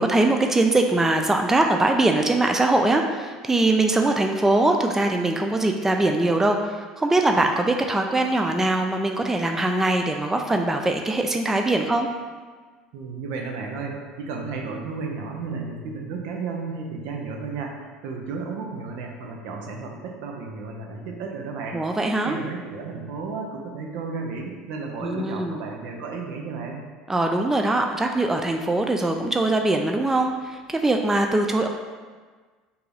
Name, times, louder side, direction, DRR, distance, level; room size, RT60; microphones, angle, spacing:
voice 1, 0.0-12.1 21.7-22.4 25.0-25.6 27.1-31.7, right 2 dB, 10° right, 3 dB, 0.3 m, -22 dB
voice 2, 12.9-17.7 18.0-21.8 22.2-26.8, right 4 dB, 65° right, 1 dB, 0.6 m, -33 dB
4.5 x 2.6 x 3.3 m, 1.4 s
hypercardioid pair, 70°, 3 cm